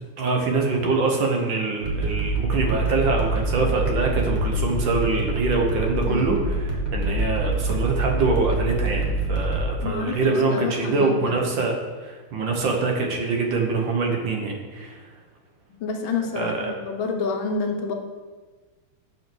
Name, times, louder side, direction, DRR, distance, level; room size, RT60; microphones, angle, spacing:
voice 1, 0.2-11.8 12.0-15.0 16.3-16.7, right 3 dB, 65° right, 1 dB, 1.6 m, -24 dB
sound 1, 1.8-9.6, right 2 dB, 25° right, 1.0 m, -25 dB
voice 2, 6.1-6.4 9.8-11.4 15.7-17.9, left 4 dB, 70° left, 3 dB, 1.5 m, -29 dB
6.1 x 5.8 x 6.0 m, 1.3 s
omnidirectional pair, 2.4 m